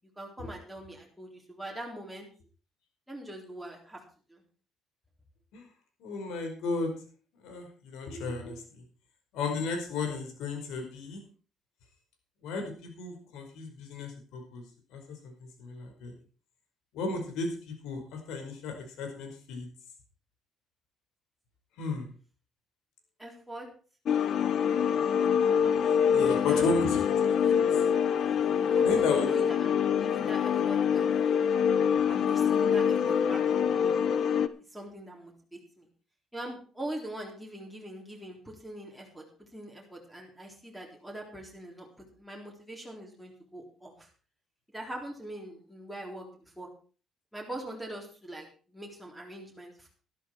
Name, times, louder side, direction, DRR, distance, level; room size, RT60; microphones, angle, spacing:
voice 1, 0.2-2.3 3.1-4.0 4.3-4.4 23.2-23.7 26.1-26.8 27.4-27.7 28.6-31.2 32.0-34.0 34.7-35.9 36.3-44.1 44.7-46.7 47.3-49.9, right 1 dB, ahead, -2 dB, 3.8 m, -42 dB
voice 2, 6.0-6.9 7.4-8.8 9.3-11.2 12.4-14.6 14.9-16.1 16.9-19.7 21.8-22.1 26.1-27.3 28.8-29.3, left 4 dB, 85° left, 4 dB, 5.1 m, -34 dB
sound 1, 24.0-34.5, left 7 dB, 55° left, 1.0 m, -25 dB
12.5 x 12.5 x 4.6 m, 0.39 s
cardioid pair, 120°, 0 cm